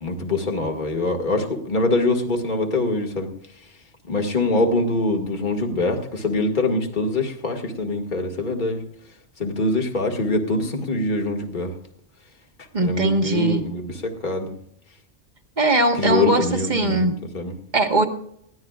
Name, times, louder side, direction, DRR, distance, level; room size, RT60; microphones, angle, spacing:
voice 1, 0.0-3.3 4.1-8.8 9.4-11.8 12.8-14.5 16.0-17.5, left 2 dB, 40° left, 2 dB, 2.0 m, -24 dB
voice 2, 12.7-13.6 15.6-17.3 17.7-18.1, right 2 dB, 40° right, 5 dB, 1.6 m, -20 dB
21.0 x 16.0 x 2.4 m, 0.70 s
omnidirectional pair, 1.2 m